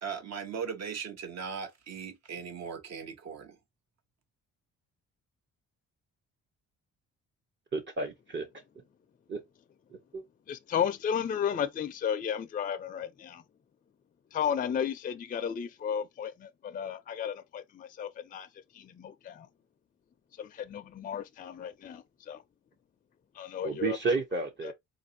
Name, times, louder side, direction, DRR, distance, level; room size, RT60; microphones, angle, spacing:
voice 1, 0.0-3.6, right 6 dB, 60° right, 1.0 m, -38 dB
voice 2, 7.7-8.5 9.3-9.4 10.1-10.2 23.6-24.7, right 4 dB, 40° right, 0.7 m, -31 dB
voice 3, 10.5-13.4 14.3-18.5 18.7-19.5 20.4-22.4 23.3-24.0 24.6-24.7, left 8 dB, 30° left, 0.4 m, -33 dB
4.1 x 2.5 x 2.7 m
cardioid pair, 90°, 30 cm